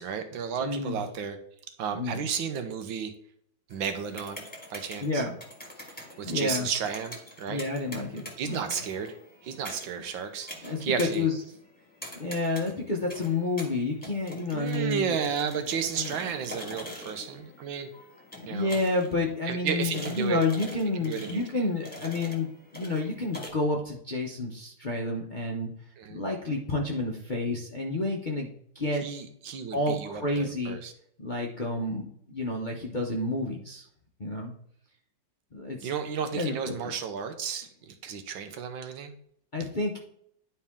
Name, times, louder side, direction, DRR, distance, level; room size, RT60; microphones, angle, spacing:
voice 1, 0.0-1.4 1.8-3.1 3.7-4.4 4.7-5.2 6.2-7.6 8.4-9.1 9.4-11.3 14.5-17.9 18.5-18.7 19.5-20.4 21.0-21.6 26.0-26.2 29.0-30.9 35.8-39.2, right 7 dB, 85° right, 7 dB, 1.7 m, -33 dB
voice 2, 0.6-1.0 1.9-2.2 5.0-5.3 5.8-6.7 7.5-8.7 10.6-11.3 12.2-15.2 16.0-16.1 18.5-25.7 26.1-29.0 29.7-30.8 31.2-33.9 34.2-34.5 35.5-35.9 36.3-36.7 39.5-40.0, left 2 dB, 40° left, -2 dB, 0.7 m, -30 dB
sound 1, 3.7-23.5, left 1 dB, 5° left, 1.4 m, -45 dB
10.5 x 4.5 x 3.6 m, 0.69 s
omnidirectional pair, 2.1 m